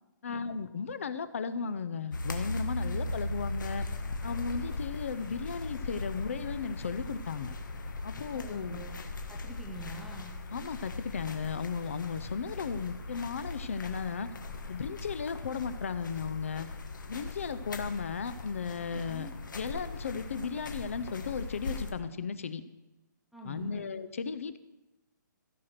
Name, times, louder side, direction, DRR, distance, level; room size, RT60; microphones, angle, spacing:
voice 1, 0.2-3.9 4.2-7.5 8.0-8.9 10.5-14.3 14.7-16.7 17.1-22.6 23.4-24.6, left 6 dB, 40° left, 13 dB, 0.6 m, -35 dB
sound 1, 2.1-21.9, left 2 dB, 70° left, 1.6 m, -39 dB
voice 2, 8.3-9.0 9.3-10.3 18.9-19.3 23.3-24.0, right 1 dB, ahead, -2 dB, 0.4 m, -45 dB
15.5 x 6.0 x 6.6 m, 1.0 s
hypercardioid pair, 180°, 11 cm